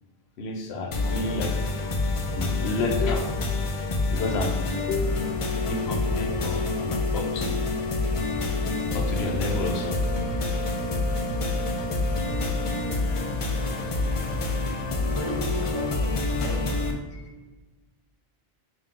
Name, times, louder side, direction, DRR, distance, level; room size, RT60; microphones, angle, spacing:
voice 1, 0.4-1.6 2.3-3.3 4.1-5.2 5.7-7.6 8.9-10.0 11.2-11.4 17.1-17.2, left 2 dB, 85° left, 3 dB, 0.9 m, -30 dB
sound 1, 0.9-16.9, left 2 dB, 55° left, 0.3 m, -27 dB
voice 2, 15.1-16.6 16.8-17.1, right 1 dB, 50° right, -4 dB, 0.3 m, -37 dB
3.4 x 2.6 x 3.7 m, 1.2 s
omnidirectional pair, 1.1 m